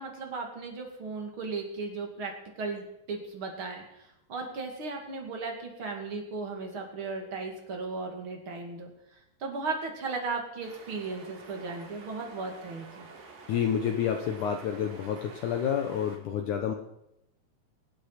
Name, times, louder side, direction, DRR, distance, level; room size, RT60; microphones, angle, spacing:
voice 1, 0.0-13.1, right 4 dB, 40° right, 2 dB, 2.5 m, -36 dB
sound 1, 10.6-16.2, right 4 dB, 85° right, 4.9 m, -49 dB
voice 2, 13.5-16.7, left 8 dB, 80° left, 5 dB, 1.7 m, -29 dB
24.0 x 8.6 x 5.8 m, 0.85 s
omnidirectional pair, 4.9 m